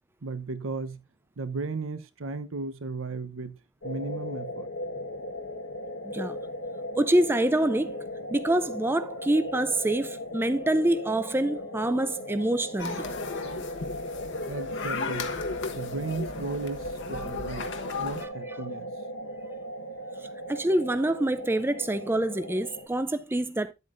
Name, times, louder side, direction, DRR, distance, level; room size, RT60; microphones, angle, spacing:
voice 1, 0.2-1.0 1.4-3.6 3.8-4.7 14.5-15.4 15.7-17.7 18.0-18.9, right 3 dB, 70° right, 0.8 m, -35 dB
sound 1, 3.8-22.9, left 1 dB, 80° left, 1.4 m, -37 dB
voice 2, 6.0-6.4 7.0-8.0 8.3-13.0 18.2-18.3 20.5-23.7, right 1 dB, 10° right, 0.4 m, -26 dB
sound 2, 12.8-18.3, left 4 dB, 60° left, 1.2 m, -35 dB
10.5 x 8.0 x 2.5 m
head